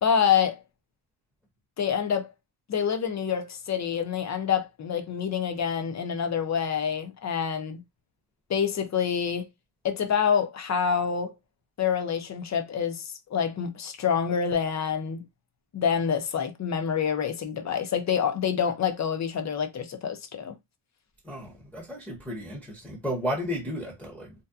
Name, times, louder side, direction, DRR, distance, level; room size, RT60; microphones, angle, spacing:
voice 1, 0.0-0.6 1.8-2.3 2.7-7.8 8.5-9.5 9.8-11.4 11.8-15.2 15.7-20.5, left 7 dB, 40° left, 0.4 m, -27 dB
voice 2, 21.2-24.3, equal, 5° left, 0.7 m, -33 dB
2.7 x 2.2 x 2.3 m
wide cardioid pair, 150°, 48 cm